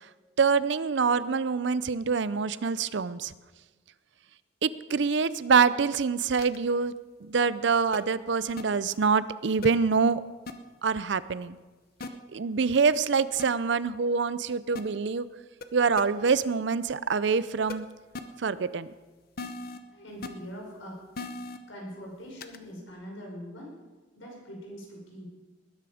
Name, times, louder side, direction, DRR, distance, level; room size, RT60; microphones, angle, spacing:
voice 1, 0.4-3.3 4.6-6.9 7.3-10.2 10.8-11.6 12.3-15.3 15.7-17.9 18.4-18.9, right 5 dB, 65° right, 16 dB, 0.5 m, -25 dB
sound 1, 6.4-6.6 7.9-8.0 8.6-8.7 9.6-9.7 10.5-10.6 12.0-12.1 13.4-13.5 14.8-14.9 15.6-15.7 16.0-16.1 17.7-17.8 18.1-18.2 19.4-19.8 20.2-20.3 21.2-21.6 22.4-22.6, left 3 dB, 50° left, 0.8 m, -36 dB
voice 2, 19.9-21.0 21.7-23.7 24.1-25.3, equal, 90° left, -1 dB, 5.1 m, -42 dB
20.0 x 10.5 x 5.0 m, 1.3 s
head